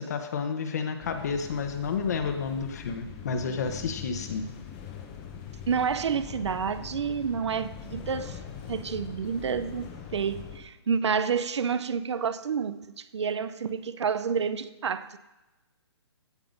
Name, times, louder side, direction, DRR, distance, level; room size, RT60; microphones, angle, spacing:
voice 1, 0.0-4.5, left 5 dB, 35° left, 1.1 m, -31 dB
sound 1, 1.0-10.6, left 8 dB, 15° left, 0.8 m, -42 dB
voice 2, 5.7-8.4 8.7-15.2, right 6 dB, 75° right, 0.7 m, -29 dB
15.5 x 5.9 x 5.3 m
hypercardioid pair, 175°, 14 cm